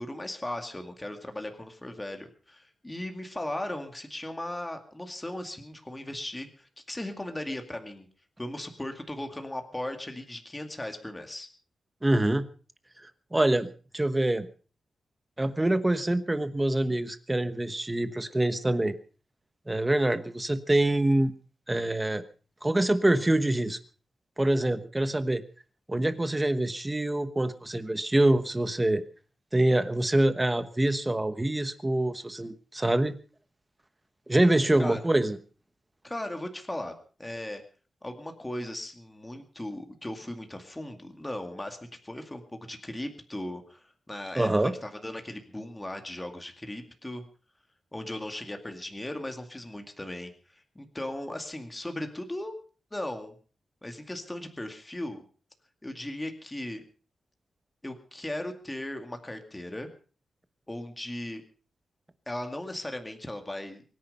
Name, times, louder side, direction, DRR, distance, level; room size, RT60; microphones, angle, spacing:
voice 1, 0.0-8.1 8.4-11.5 34.8-35.0 36.0-37.6 38.0-41.8 42.0-47.2 47.9-52.6 52.9-53.3 53.8-55.2 55.8-56.8 57.8-59.9 60.7-61.4 62.3-63.8, left 1 dB, 10° left, 5 dB, 2.2 m, -37 dB
voice 2, 12.0-12.4 13.0-13.7 13.9-14.5 15.4-18.9 19.7-21.3 21.7-22.2 22.6-23.8 24.4-25.4 25.9-29.0 29.5-33.1 34.3-35.4 44.3-44.7, right 1 dB, 15° right, 12 dB, 1.2 m, -25 dB
23.5 x 10.5 x 5.4 m, 0.39 s
wide cardioid pair, 160°, 0 cm